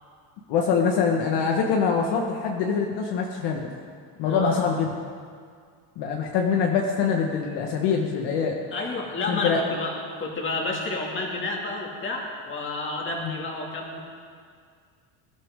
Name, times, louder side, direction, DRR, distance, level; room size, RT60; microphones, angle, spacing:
voice 1, 0.5-3.7 4.2-4.9 6.0-8.6 9.3-9.6 13.2-13.3, left 6 dB, 55° left, 1 dB, 1.5 m, -24 dB
voice 2, 4.2-4.6 8.7-14.0, left 2 dB, 25° left, -1 dB, 2.4 m, -30 dB
22.0 x 12.5 x 3.7 m, 2.1 s
cardioid pair, 150°, 49 cm